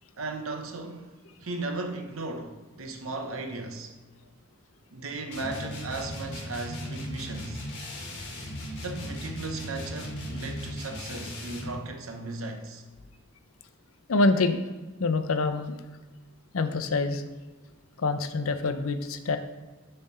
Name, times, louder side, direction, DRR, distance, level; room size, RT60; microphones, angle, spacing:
voice 1, 0.2-1.1 1.4-3.9 4.9-7.6 8.8-12.8, right 2 dB, 80° right, 0.9 m, -36 dB
sound 1, 5.3-11.8, equal, 55° left, 1.6 m, -37 dB
voice 2, 14.1-14.6 15.0-15.7 16.5-17.2 18.0-19.4, left 3 dB, 85° left, 0.6 m, -25 dB
7.1 x 3.4 x 5.6 m
head